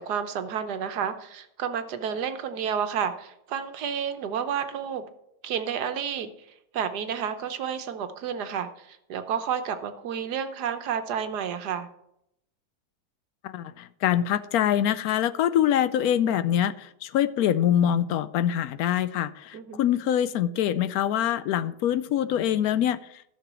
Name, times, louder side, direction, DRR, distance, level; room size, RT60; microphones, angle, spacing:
voice 1, 0.0-5.0 5.4-6.3 6.7-11.9 19.5-19.8, right 8 dB, 80° right, 9 dB, 1.5 m, -30 dB
voice 2, 13.4-23.0, left 10 dB, 75° left, 15 dB, 1.0 m, -24 dB
13.0 x 5.9 x 6.1 m, 0.78 s
omnidirectional pair, 1.7 m